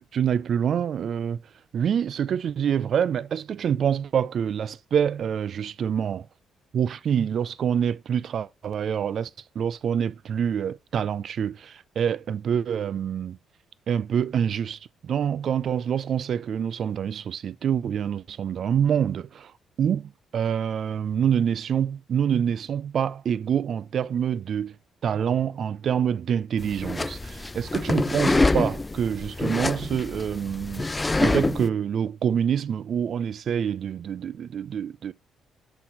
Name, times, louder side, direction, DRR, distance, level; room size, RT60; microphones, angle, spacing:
voice 1, 0.0-1.4 1.7-6.3 6.7-9.3 9.6-13.4 13.9-19.5 19.8-24.7 25.0-30.9 31.2-35.1, right 8 dB, 60° right, 0.4 m, -26 dB
sound 1, 26.6-31.7, left 2 dB, 20° left, 0.3 m, -26 dB
5.9 x 4.2 x 5.8 m
cardioid pair, 90°, 0 cm